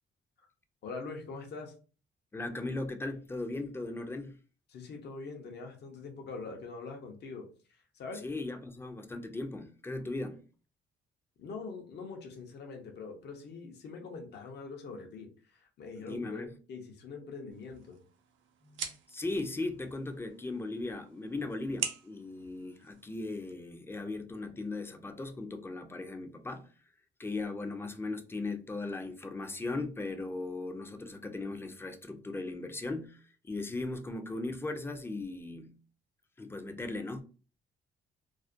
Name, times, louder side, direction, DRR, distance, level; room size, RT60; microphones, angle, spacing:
voice 1, 0.8-1.7 4.7-7.5 7.7-8.2 11.4-18.0, left 4 dB, 60° left, 0.6 m, -43 dB
voice 2, 2.3-4.4 8.2-10.4 16.0-16.5 18.6-26.7 27.2-35.7 36.4-37.2, left 2 dB, 10° left, 0.4 m, -38 dB
sound 1, 17.5-23.5, right 8 dB, 70° right, 0.5 m, -44 dB
2.4 x 2.1 x 2.4 m
cardioid pair, 90°, 20 cm